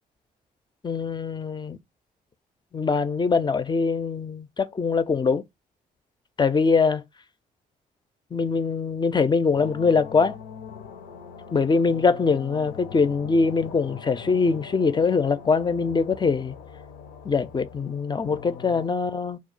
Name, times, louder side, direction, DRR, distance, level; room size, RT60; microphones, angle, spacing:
voice 1, 0.8-1.8 2.7-5.4 6.4-7.0 8.3-10.4 11.5-16.5 17.2-19.4, left 4 dB, 25° left, 0.4 m, -23 dB
sound 1, 9.5-18.9, left 7 dB, 80° left, 0.5 m, -42 dB
2.3 x 2.1 x 3.8 m
hypercardioid pair, 45°, 19 cm